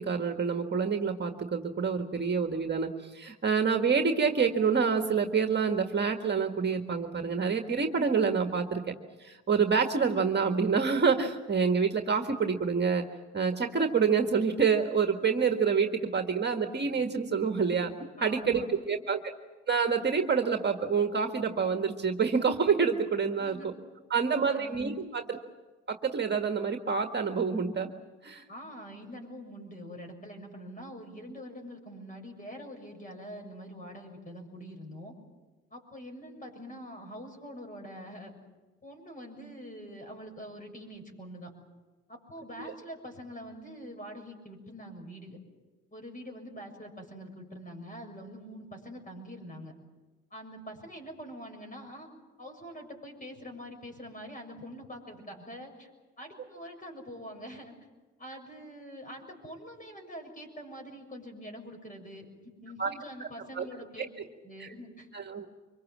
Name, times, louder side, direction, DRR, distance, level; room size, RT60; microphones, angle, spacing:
voice 1, 0.0-8.8 9.2-13.0 13.3-17.9 18.2-19.2 19.7-23.7 24.1-25.4 25.9-27.9 28.2-28.4 42.6-42.7 62.8-62.9 63.6-63.7 64.6-64.7 65.1-65.5, right 5 dB, 35° right, 5 dB, 1.8 m, -27 dB
voice 2, 18.2-18.9 23.4-23.7 24.4-24.8 28.5-35.1 35.7-38.4 38.8-41.5 42.1-45.4 45.9-49.7 50.3-52.1 52.4-55.9 56.2-57.7 58.2-64.1 64.4-65.1, equal, 25° left, 4 dB, 6.8 m, -45 dB
25.5 x 22.5 x 7.5 m, 1.2 s
cardioid pair, 90°, 30 cm